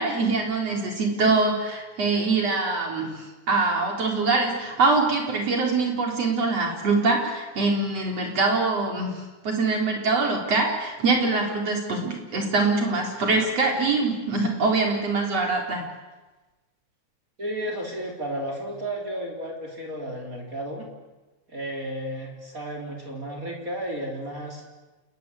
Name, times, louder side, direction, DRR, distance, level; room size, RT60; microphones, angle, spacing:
voice 1, 0.0-15.8, right 3 dB, 55° right, 1 dB, 5.0 m, -24 dB
voice 2, 17.4-20.9 21.5-24.6, right 1 dB, 25° right, 1 dB, 3.8 m, -33 dB
29.0 x 19.5 x 8.4 m, 1.2 s
omnidirectional pair, 3.4 m